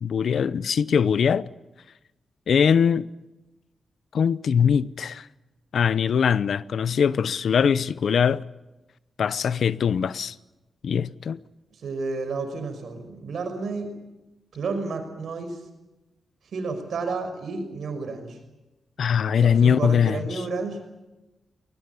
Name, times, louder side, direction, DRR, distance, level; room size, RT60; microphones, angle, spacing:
voice 1, 0.0-1.5 2.5-3.1 4.1-5.3 5.7-8.4 9.2-10.3 10.8-11.4 19.0-20.4, left 7 dB, 75° left, 0.8 m, -22 dB
voice 2, 11.8-13.9 14.5-15.6 16.5-18.4 19.4-20.8, right 4 dB, 75° right, 5.7 m, -31 dB
21.5 x 20.0 x 9.9 m
cardioid pair, 95°, 0 cm